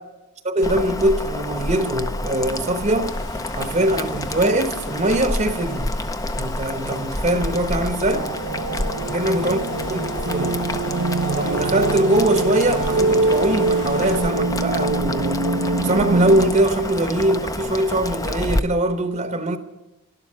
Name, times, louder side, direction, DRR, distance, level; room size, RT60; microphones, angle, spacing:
voice 1, 0.4-3.1 3.6-5.9 6.3-8.3 9.1-9.6 9.9-10.0 10.3-10.6 11.3-15.5 15.8-19.6, right 1 dB, 35° right, 0.9 m, -22 dB
Boiling, 0.6-18.6, left 2 dB, 15° left, 0.5 m, -29 dB
sound 1, 3.1-14.3, left 2 dB, 85° left, 3.7 m, -42 dB
sound 2, 8.0-16.5, right 2 dB, 90° right, 0.9 m, -24 dB
12.0 x 11.5 x 7.3 m
head